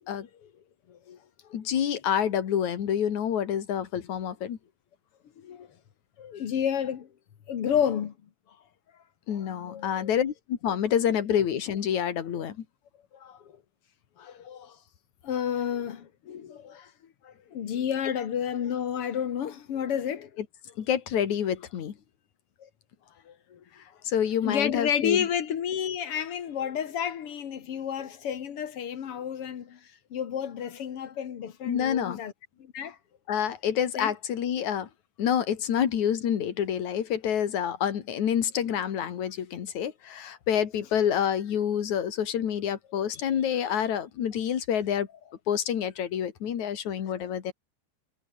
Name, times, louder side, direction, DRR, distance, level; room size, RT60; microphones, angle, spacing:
voice 1, 0.9-1.2 1.4-1.6 5.4-5.7 6.2-7.1 7.5-8.1 9.3-10.1 12.4-12.5 13.1-13.6 14.2-14.8 15.2-16.9 17.2-20.3 22.6-22.7 23.3-23.6 24.4-32.3 32.6-33.0 34.0-34.1 47.2-47.3, left 8 dB, 55° left, 2.3 m, -31 dB
voice 2, 1.5-4.6 9.3-12.6 20.8-21.9 24.0-25.2 31.7-32.2 33.3-34.9 35.2-45.1 45.5-47.5, left 9 dB, 80° left, 3.4 m, -28 dB
omnidirectional pair, 3.3 m